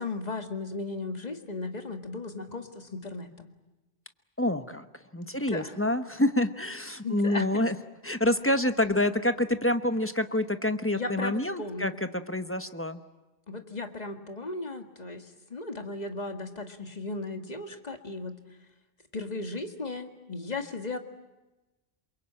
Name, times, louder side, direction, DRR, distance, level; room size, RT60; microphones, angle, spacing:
voice 1, 0.0-3.5 5.3-5.7 7.0-7.5 10.9-12.0 13.5-15.2 15.5-18.3 19.1-21.0, left 3 dB, 40° left, 6 dB, 2.0 m, -36 dB
voice 2, 4.4-4.9 5.1-7.8 8.0-13.0, left 1 dB, 15° left, 9 dB, 1.0 m, -27 dB
28.0 x 23.0 x 8.8 m, 1.1 s
omnidirectional pair, 1.1 m